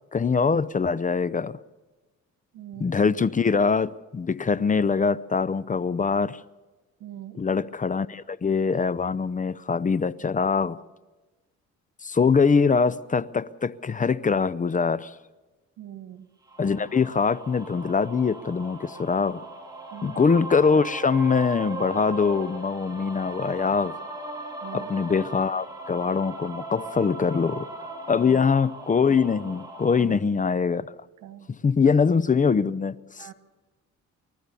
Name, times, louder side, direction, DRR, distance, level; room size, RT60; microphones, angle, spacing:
voice 1, 0.1-1.6 2.8-6.4 7.4-10.8 12.0-15.2 16.6-19.4 20.0-24.0 24.7-27.7 28.1-30.9 31.5-33.3, left 5 dB, 25° left, 0.6 m, -23 dB
voice 2, 2.5-2.9 7.0-7.4 15.8-16.3 19.9-20.4 24.6-24.9 28.2-28.4 30.0-30.1 31.2-31.5 33.2-33.3, right 11 dB, 85° right, 1.6 m, -42 dB
sound 1, 16.5-30.0, right 2 dB, 10° right, 6.6 m, -38 dB
29.5 x 13.5 x 7.0 m
cardioid pair, 90°, 30 cm